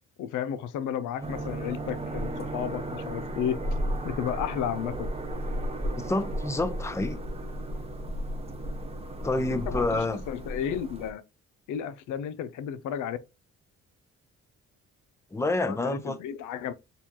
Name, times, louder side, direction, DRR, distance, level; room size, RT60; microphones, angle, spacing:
voice 1, 0.2-3.6 4.0-5.1 9.5-11.2 11.7-13.2 15.7-16.7, left 9 dB, 85° left, 0.6 m, -33 dB
sound 1, 1.2-11.1, right 1 dB, 20° right, 0.9 m, -34 dB
voice 2, 6.0-7.2 9.2-10.2 15.3-16.2, left 2 dB, 10° left, 0.6 m, -28 dB
6.7 x 2.3 x 2.8 m
cardioid pair, 90°, 30 cm